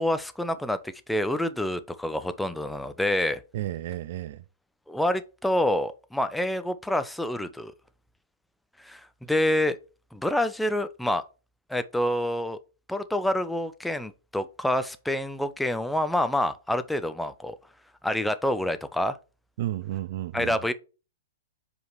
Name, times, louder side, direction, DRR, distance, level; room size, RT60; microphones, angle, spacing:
voice 1, 0.0-3.4 4.9-7.7 8.8-9.8 10.1-11.2 11.7-12.6 12.9-17.6 18.0-19.2 20.3-20.7, left 1 dB, 5° left, 0.7 m, -27 dB
voice 2, 3.5-4.4 19.6-20.6, right 14 dB, 55° right, 0.5 m, -32 dB
5.2 x 4.8 x 5.8 m
figure-of-eight pair, 110°, 0 cm